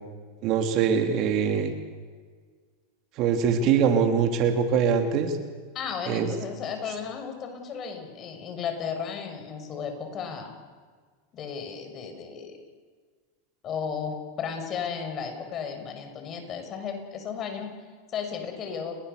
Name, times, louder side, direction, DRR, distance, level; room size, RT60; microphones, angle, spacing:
voice 1, 0.4-1.7 3.2-5.3 6.1-6.3, right 7 dB, 50° right, 5 dB, 3.4 m, -23 dB
voice 2, 5.7-10.5 11.3-12.6 13.6-17.7 18.1-18.9, left 6 dB, 40° left, 5 dB, 6.4 m, -34 dB
30.0 x 21.0 x 7.0 m, 1.6 s
hypercardioid pair, 105°, 0 cm